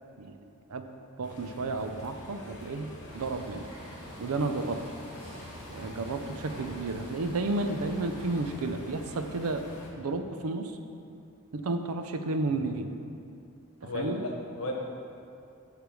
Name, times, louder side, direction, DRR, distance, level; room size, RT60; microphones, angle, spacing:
voice 1, 0.2-0.9 1.2-3.7 4.2-4.8 5.7-9.7 10.0-10.8 11.5-12.9 13.9-14.2, right 3 dB, 80° right, 7 dB, 0.5 m, -32 dB
sound 1, 1.2-9.9, left 1 dB, 55° left, 1.2 m, -46 dB
sound 2, 3.1-8.5, equal, 25° right, 1.7 m, -49 dB
voice 2, 13.8-14.7, left 1 dB, 75° left, 0 dB, 1.0 m, -34 dB
8.1 x 3.3 x 6.2 m, 2.6 s
head